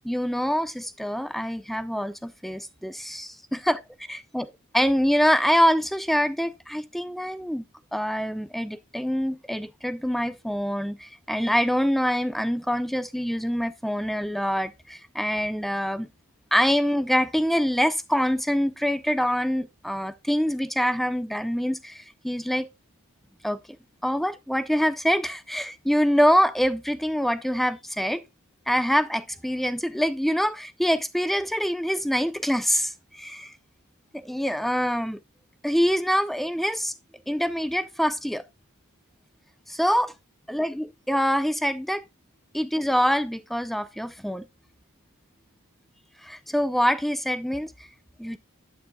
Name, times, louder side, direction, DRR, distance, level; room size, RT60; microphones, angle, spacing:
voice 1, 0.0-3.8 4.1-4.5 4.7-7.6 7.9-16.1 16.5-22.7 23.4-23.6 24.0-28.2 28.7-33.5 34.1-35.2 35.6-36.9 37.3-38.4 39.7-40.1 40.5-42.0 42.5-44.5 46.2-47.7 48.2-48.4, equal, ahead, 0.4 m, -25 dB
8.9 x 8.2 x 2.3 m
head